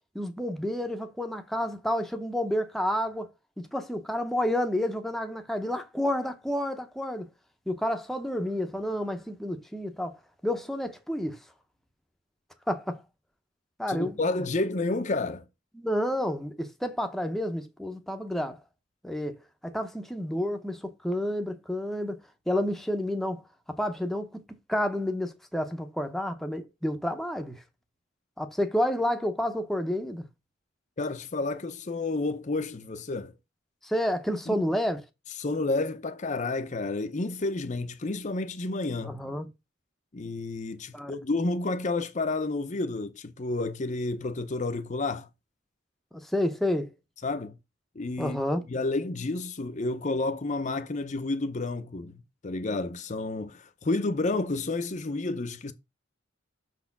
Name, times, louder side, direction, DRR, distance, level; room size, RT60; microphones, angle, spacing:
voice 1, 0.1-3.3 3.7-7.3 7.7-10.2 10.4-11.4 12.7-13.0 13.8-14.2 15.8-18.6 19.0-19.3 19.6-22.2 22.5-23.4 23.8-24.3 24.7-27.6 28.4-30.2 33.8-35.0 39.1-39.5 40.9-41.2 46.2-46.9 48.2-48.6, left 1 dB, ahead, 0.7 m, -30 dB
voice 2, 13.9-15.5 31.0-33.3 34.5-34.6 35.4-39.2 40.1-45.3 47.2-47.5 48.0-48.4 48.7-55.7, left 2 dB, 40° left, 0.6 m, -30 dB
6.2 x 4.2 x 5.8 m
head